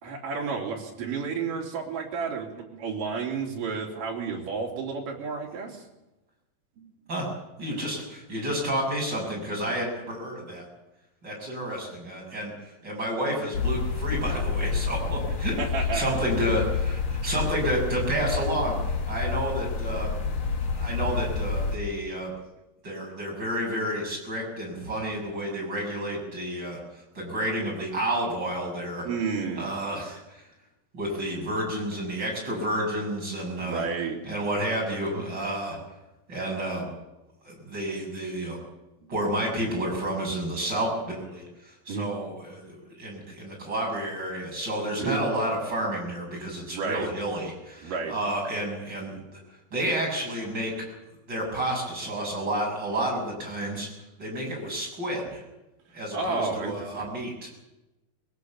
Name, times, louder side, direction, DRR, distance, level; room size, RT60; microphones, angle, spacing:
voice 1, 0.0-5.8 6.8-6.9 15.6-16.2 29.0-29.6 33.6-34.2 41.9-42.1 45.0-45.2 46.7-47.1 47.8-48.1 56.1-57.1, right 5 dB, 60° right, 0 dB, 4.6 m, -31 dB
voice 2, 7.6-10.7 11.2-12.5 12.8-20.1 20.8-22.3 22.8-29.1 29.6-30.4 30.9-33.9 34.2-35.8 36.3-36.9 37.4-38.6 39.1-49.4 49.7-50.7 51.3-53.9 54.2-55.4 55.9-57.3, right 1 dB, 25° right, -1 dB, 7.1 m, -30 dB
sound 1, 13.5-21.8, left 5 dB, 70° left, 1.1 m, -29 dB
22.0 x 18.0 x 7.2 m, 0.99 s
omnidirectional pair, 4.5 m